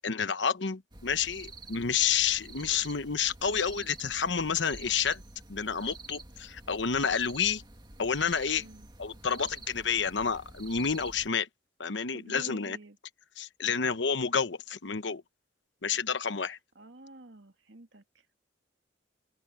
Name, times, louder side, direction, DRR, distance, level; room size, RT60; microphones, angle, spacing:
voice 1, 0.0-5.2 5.5-7.6 8.0-8.6 9.0-11.5 11.8-12.8 13.4-15.2 15.8-16.6, left 6 dB, 75° left, 1.1 m, -29 dB
sound 1, 0.9-11.3, right 3 dB, 25° right, 2.2 m, -48 dB
voice 2, 8.5-8.9 12.1-13.0 16.7-18.3, right 2 dB, 75° right, 2.4 m, -50 dB
open air
head